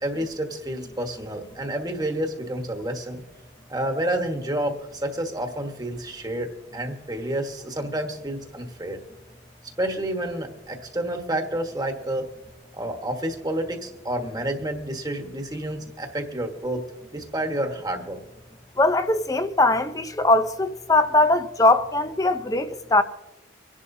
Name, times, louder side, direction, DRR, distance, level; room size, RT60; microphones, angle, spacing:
voice 1, 0.0-3.2 3.7-9.0 9.8-12.2 12.7-16.8 17.1-18.2, right 1 dB, 20° right, 1.3 m, -29 dB
voice 2, 18.8-23.0, left 2 dB, 15° left, 0.5 m, -21 dB
25.5 x 11.0 x 2.7 m
head